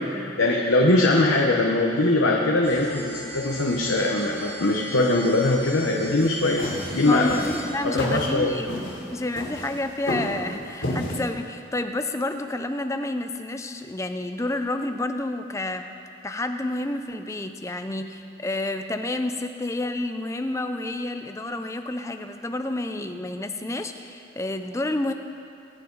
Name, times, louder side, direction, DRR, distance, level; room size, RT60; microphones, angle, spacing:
voice 1, 0.1-7.3 7.9-8.5, left 2 dB, 80° left, -1 dB, 1.1 m, -21 dB
sound 1, 2.6-7.6, right 1 dB, 30° right, 1.4 m, -40 dB
sound 2, 6.2-11.2, left 1 dB, 65° left, 3.5 m, -31 dB
voice 2, 7.0-8.8 9.1-15.9 16.2-25.1, left 2 dB, 15° left, 7 dB, 0.5 m, -29 dB
22.0 x 8.4 x 4.0 m, 2.6 s
head